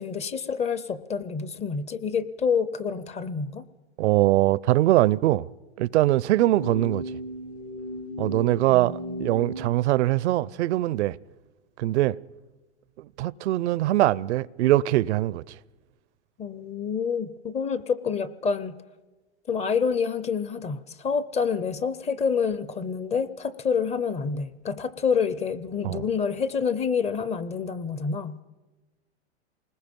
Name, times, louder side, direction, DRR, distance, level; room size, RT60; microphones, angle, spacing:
voice 1, 0.0-3.7 8.7-9.4 16.4-18.7 19.5-28.4, left 6 dB, 20° left, 0.6 m, -28 dB
voice 2, 4.0-5.5 5.8-7.0 8.2-11.2 11.8-12.2 13.0-15.5 25.8-26.0, right 15 dB, 75° right, 0.6 m, -22 dB
sound 1, 6.4-9.6, equal, 70° left, 5.1 m, -35 dB
27.5 x 20.0 x 5.3 m
hypercardioid pair, 125°, 34 cm